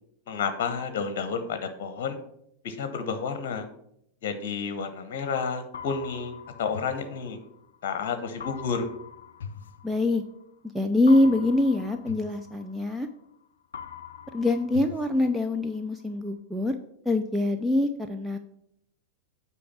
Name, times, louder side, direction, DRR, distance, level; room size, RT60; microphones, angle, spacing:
voice 1, 0.3-2.2 2.6-3.7 4.2-7.4 7.8-8.9, left 5 dB, 50° left, 9 dB, 0.9 m, -31 dB
sound 1, 5.7-7.8 8.4-10.5 11.1-13.4 13.7-15.8, left 7 dB, 65° left, 0.5 m, -43 dB
voice 2, 9.8-10.2 10.7-13.1 14.3-16.8 17.1-18.4, left 2 dB, 5° right, 5 dB, 0.5 m, -24 dB
8.5 x 4.7 x 6.1 m, 0.74 s
figure-of-eight pair, 90°, 0 cm